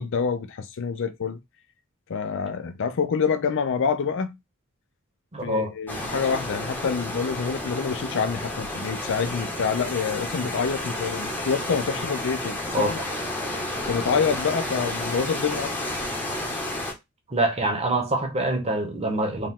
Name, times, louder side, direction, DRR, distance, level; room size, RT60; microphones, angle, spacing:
voice 1, 0.0-1.4 2.1-4.4 5.4-13.0 13.9-15.7, left 6 dB, 60° left, 0.5 m, -27 dB
voice 2, 5.3-5.7 12.7-12.9 17.3-19.5, right 1 dB, 30° right, 1.0 m, -25 dB
sound 1, 5.9-16.9, left 1 dB, 10° left, 1.0 m, -31 dB
4.6 x 2.4 x 3.6 m
head